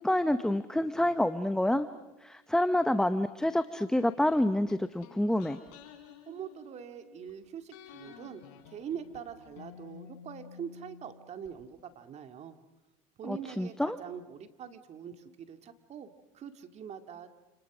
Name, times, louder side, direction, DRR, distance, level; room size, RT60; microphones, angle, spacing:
voice 1, 0.0-1.9 2.2-5.6 13.2-14.0, left 1 dB, 5° left, 11 dB, 0.9 m, -28 dB
sound 1, 4.3-7.3 7.7-11.5 11.8-11.9, left 8 dB, 75° left, 4.6 m, -52 dB
voice 2, 6.3-12.6 13.2-17.3, right 8 dB, 40° right, 8 dB, 2.4 m, -43 dB
29.5 x 29.5 x 6.2 m, 1.0 s
supercardioid pair, 110°, 18 cm